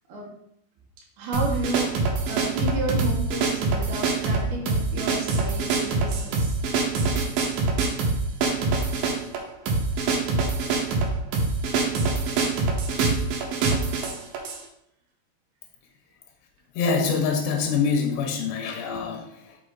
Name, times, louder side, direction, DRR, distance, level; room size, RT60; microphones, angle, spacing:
voice 1, 1.2-6.6, right 2 dB, 70° right, -3 dB, 2.4 m, -32 dB
sound 1, 1.3-14.6, right 3 dB, 85° right, 2.8 m, -25 dB
voice 2, 16.7-19.6, left 5 dB, 85° left, 3 dB, 2.5 m, -25 dB
5.8 x 4.9 x 3.8 m, 0.76 s
omnidirectional pair, 4.1 m